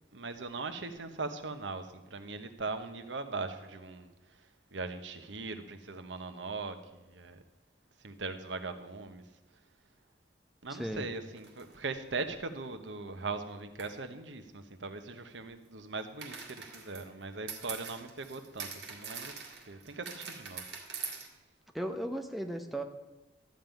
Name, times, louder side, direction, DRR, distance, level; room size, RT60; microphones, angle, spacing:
voice 1, 0.1-7.4 8.0-9.2 10.6-19.3 19.7-20.6, right 3 dB, 90° right, 8 dB, 1.1 m, -40 dB
voice 2, 10.7-11.1 21.7-22.8, right 1 dB, ahead, 4 dB, 0.8 m, -36 dB
sound 1, 11.4-11.7 13.8-13.9 16.2-21.3, right 6 dB, 70° right, 2.1 m, -43 dB
13.0 x 5.5 x 9.1 m, 1.0 s
head